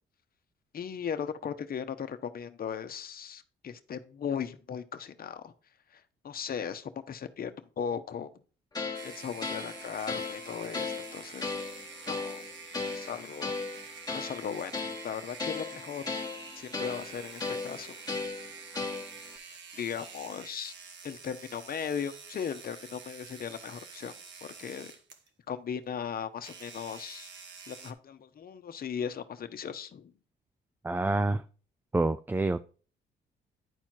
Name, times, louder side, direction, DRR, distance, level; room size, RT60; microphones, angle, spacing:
voice 1, 0.7-5.5 5.9-8.3 9.0-11.5 12.1-12.4 12.9-13.5 13.9-16.1 16.6-18.0 19.4-20.7 21.0-24.1 24.6-24.9 25.5-27.3 27.7-30.1, left 7 dB, 50° left, 0.9 m, -37 dB
sound 1, 8.7-19.4, left 4 dB, 20° left, 1.3 m, -37 dB
sound 2, 8.9-25.3 26.4-27.9, right 5 dB, 65° right, 1.3 m, -47 dB
voice 2, 30.8-31.4 31.9-32.6, right 2 dB, 10° right, 0.3 m, -27 dB
10.0 x 4.5 x 4.5 m
cardioid pair, 90°, 20 cm